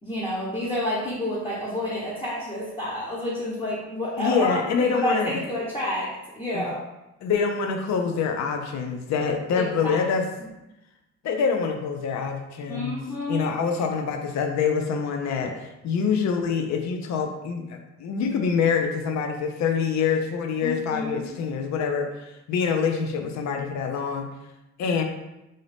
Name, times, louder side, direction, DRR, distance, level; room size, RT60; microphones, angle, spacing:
voice 1, 0.0-4.5 4.8-6.8 9.5-10.0 12.7-13.5 20.6-21.4, left 1 dB, 15° left, -8 dB, 1.0 m, -29 dB
voice 2, 4.2-5.4 6.5-6.7 7.2-10.2 11.2-13.0 13.3-24.3 24.8-25.0, left 6 dB, 65° left, 4 dB, 0.6 m, -25 dB
3.8 x 2.6 x 3.4 m, 0.96 s
cardioid pair, 90°, 30 cm